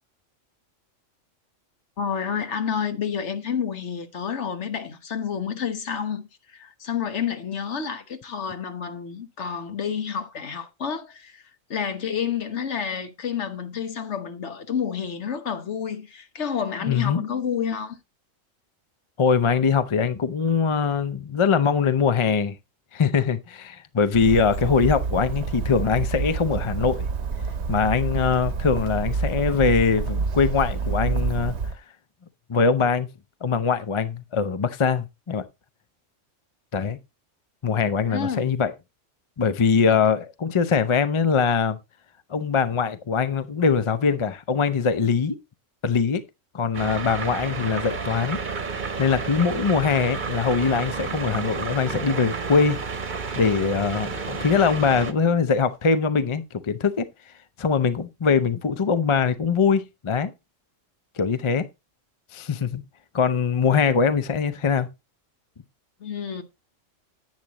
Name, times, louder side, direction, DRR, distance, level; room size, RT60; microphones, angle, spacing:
voice 1, 2.0-11.4 11.7-18.0 38.1-38.5 39.9-40.0 66.0-66.4, left 7 dB, 65° left, 1.4 m, -29 dB
voice 2, 16.9-17.2 19.2-22.6 22.9-27.1 27.7-31.6 32.5-33.1 33.4-35.4 36.7-37.0 37.6-38.7 39.4-41.8 42.3-45.3 45.8-46.2 46.5-48.4 49.0-52.8 53.4-57.1 57.6-60.3 61.2-61.7 62.3-62.8 63.1-64.9, left 5 dB, 35° left, 0.5 m, -22 dB
Bird, 24.1-31.7, right 5 dB, 60° right, 1.1 m, -28 dB
sound 1, 46.7-55.1, right 5 dB, 40° right, 1.1 m, -31 dB
10.5 x 9.0 x 2.9 m
omnidirectional pair, 1.3 m